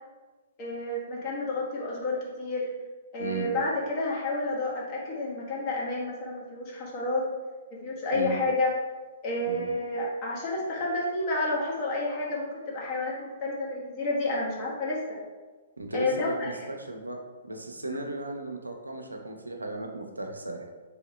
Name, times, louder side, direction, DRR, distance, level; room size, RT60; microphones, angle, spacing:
voice 1, 0.6-2.7 3.1-7.2 7.8-8.7 9.2-15.2 15.9-16.5 17.9-18.0, left 2 dB, 35° left, -4 dB, 1.1 m, -30 dB
voice 2, 3.2-3.6 8.1-8.4 9.5-9.7 15.8-17.2 17.4-20.7, right 2 dB, 90° right, 3 dB, 0.5 m, -35 dB
3.1 x 2.8 x 3.0 m, 1.3 s
figure-of-eight pair, 120°, 0 cm